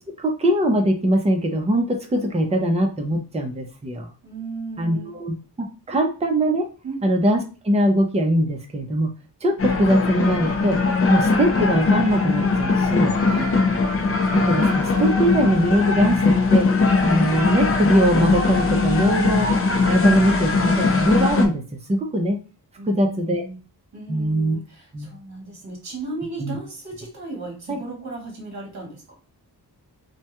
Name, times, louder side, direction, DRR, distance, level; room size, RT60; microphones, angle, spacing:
voice 1, 0.2-4.1 4.8-6.7 7.0-9.1 9.4-10.8 11.1-13.2 14.3-16.7 17.0-19.5 19.8-21.6 21.9-22.4 22.9-23.4 24.1-24.6 24.9-25.1 26.4-26.6 27.7-27.8, equal, 15° right, 3 dB, 0.4 m, -21 dB
voice 2, 4.2-5.2 6.8-7.1 13.2-13.6 22.8-23.6 23.9-29.2, right 3 dB, 45° right, 0 dB, 1.0 m, -35 dB
sound 1, 9.6-21.5, left 3 dB, 35° left, 0.4 m, -20 dB
2.2 x 2.2 x 2.8 m, 0.34 s
wide cardioid pair, 125°, 38 cm